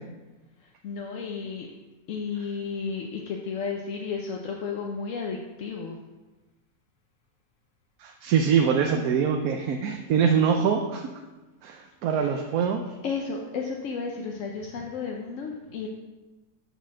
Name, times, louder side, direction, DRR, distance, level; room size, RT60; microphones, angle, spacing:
voice 1, 0.6-1.7 2.1-6.0 12.2-12.3 13.0-15.9, left 5 dB, 60° left, 1 dB, 1.0 m, -33 dB
voice 2, 8.0-11.1 11.6-12.8, right 7 dB, 70° right, 4 dB, 1.1 m, -24 dB
6.8 x 6.4 x 6.3 m, 1.2 s
omnidirectional pair, 1.7 m